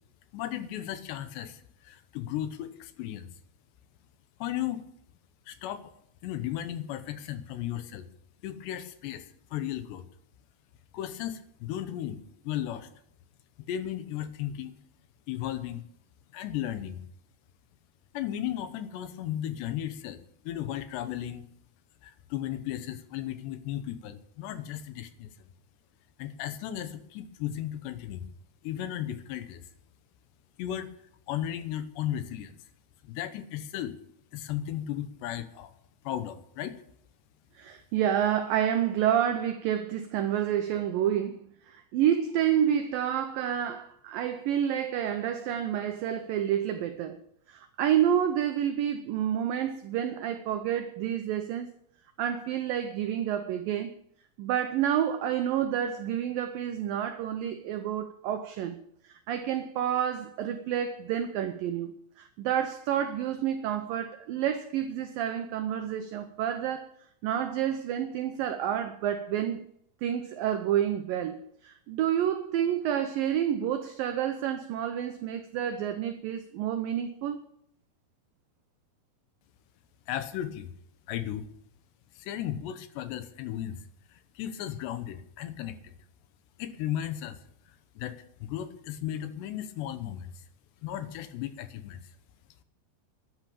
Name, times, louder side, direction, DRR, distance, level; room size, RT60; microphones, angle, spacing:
voice 1, 0.3-3.3 4.4-4.8 5.5-5.9 6.2-8.1 8.4-10.0 10.9-12.9 13.7-14.7 15.3-15.9 16.3-17.0 18.1-21.5 22.0-25.3 26.2-28.3 28.6-29.6 30.6-30.9 31.3-32.5 33.0-33.9 34.3-35.7 36.0-36.8 80.1-80.7 81.1-81.5 82.2-83.8 84.1-85.9 86.6-87.4 88.0-90.3 90.8-92.0, left 11 dB, 80° left, 3.1 m, -35 dB
voice 2, 37.6-41.4 41.7-47.2 47.5-51.7 52.2-53.9 54.4-58.8 59.0-66.9 67.2-69.6 70.0-77.4, right 10 dB, 85° right, 2.0 m, -29 dB
12.5 x 10.5 x 6.9 m
omnidirectional pair, 5.0 m